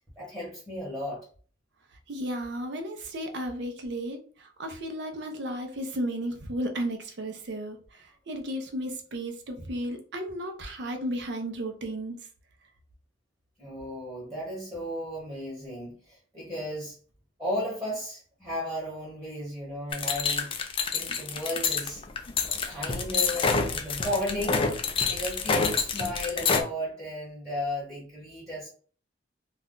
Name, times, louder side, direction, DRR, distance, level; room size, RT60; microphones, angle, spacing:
voice 1, 0.2-1.2 13.6-17.0 17.4-20.5 20.9-22.0 22.7-28.7, left 1 dB, 15° right, -6 dB, 1.1 m, -34 dB
voice 2, 2.1-12.2, right 1 dB, 65° right, 4 dB, 0.6 m, -34 dB
sound 1, 19.9-26.6, left 5 dB, 30° left, 0.3 m, -27 dB
2.5 x 2.2 x 3.6 m, 0.43 s
head